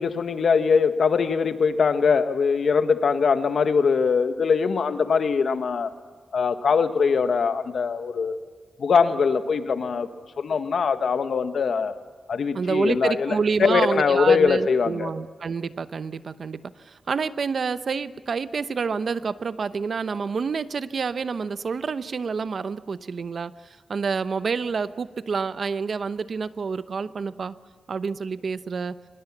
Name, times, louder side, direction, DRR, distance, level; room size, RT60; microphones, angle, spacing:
voice 1, 0.0-5.9 6.3-8.4 8.8-10.1 10.4-11.9 12.3-15.1, left 5 dB, 70° left, 9 dB, 1.4 m, -22 dB
voice 2, 12.5-27.5 27.9-29.0, right 5 dB, 60° right, 13 dB, 0.8 m, -28 dB
24.5 x 21.0 x 7.3 m, 1.4 s
cardioid pair, 90°, 0 cm